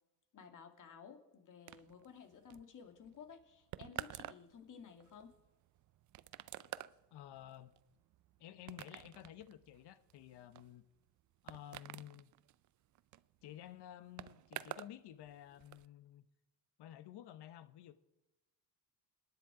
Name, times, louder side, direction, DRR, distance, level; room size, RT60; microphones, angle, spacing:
voice 1, 0.3-5.4, left 7 dB, 45° left, 6 dB, 2.4 m, -55 dB
sound 1, 1.7-15.0 15.2-15.9, right 13 dB, 45° right, 0.5 m, -50 dB
voice 2, 7.1-7.7 8.4-10.8 11.4-12.3 13.4-16.3 16.8-17.9, left 12 dB, 70° left, 13 dB, 1.1 m, -53 dB
26.5 x 10.0 x 4.9 m, 1.0 s
cardioid pair, 120°, 42 cm